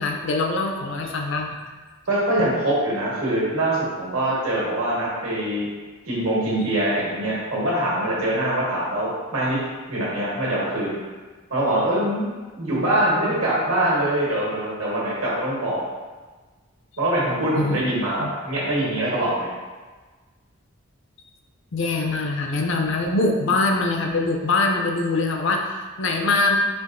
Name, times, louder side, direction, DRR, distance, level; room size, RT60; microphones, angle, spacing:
voice 1, 0.0-1.6 17.6-17.8 18.2-18.3 21.7-26.6, left 3 dB, 60° left, 2 dB, 0.4 m, -23 dB
voice 2, 2.1-5.7 6.0-9.6 9.9-10.9 11.5-12.3 12.5-15.8 17.0-19.5, right 1 dB, 80° right, -6 dB, 1.3 m, -23 dB
4.4 x 2.9 x 2.5 m, 1.3 s
head